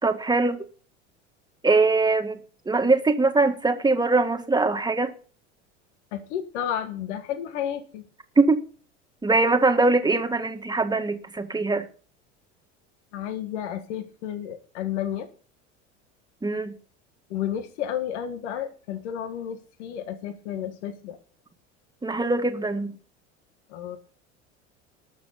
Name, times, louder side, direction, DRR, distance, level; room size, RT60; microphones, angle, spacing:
voice 1, 0.0-0.6 1.6-2.4 2.7-5.1 8.4-8.6 9.2-11.9 16.4-16.7 22.0-22.9, right 3 dB, 10° right, 1.8 m, -22 dB
voice 2, 6.1-8.0 13.1-15.3 17.3-21.2 23.7-24.0, left 10 dB, 70° left, 1.8 m, -32 dB
19.5 x 6.9 x 4.2 m
hypercardioid pair, 80°, 36 cm